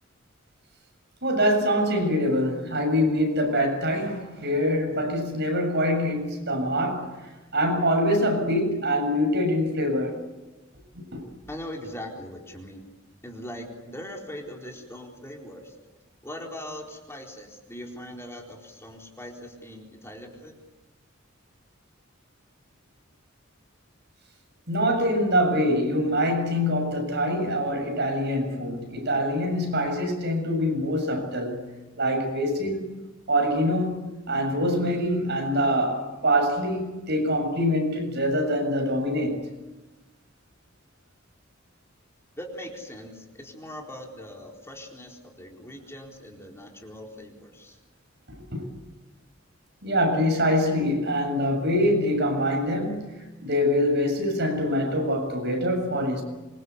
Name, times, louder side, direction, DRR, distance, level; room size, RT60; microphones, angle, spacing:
voice 1, 1.2-7.2 7.5-10.2 10.9-11.2 24.7-31.6 32.0-32.9 33.3-39.4 48.5-48.7 49.8-56.2, equal, 60° right, 7.1 m, -24 dB
voice 2, 11.5-12.9 13.2-15.8 16.2-20.6 42.4-47.8, left 1 dB, 15° left, 4.2 m, -40 dB
27.0 x 24.0 x 8.3 m
head